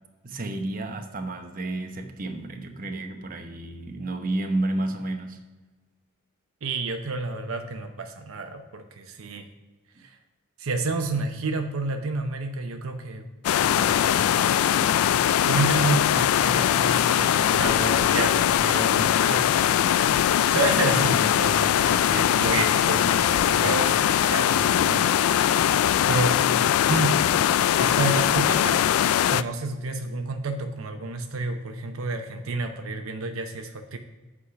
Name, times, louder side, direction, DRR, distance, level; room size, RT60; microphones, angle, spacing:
voice 1, 0.2-5.4, right 2 dB, 40° right, 4 dB, 0.9 m, -31 dB
voice 2, 6.6-9.4 10.0-10.2 10.6-13.2 13.6-15.1 15.5-20.1 20.5-25.1 26.1-26.4 26.9-27.2 27.8-28.8 29.3-34.0, right 3 dB, 75° right, 5 dB, 0.7 m, -30 dB
sound 1, 13.4-29.4, left 10 dB, 85° left, 0.3 m, -21 dB
8.1 x 4.9 x 5.8 m, 1.2 s
head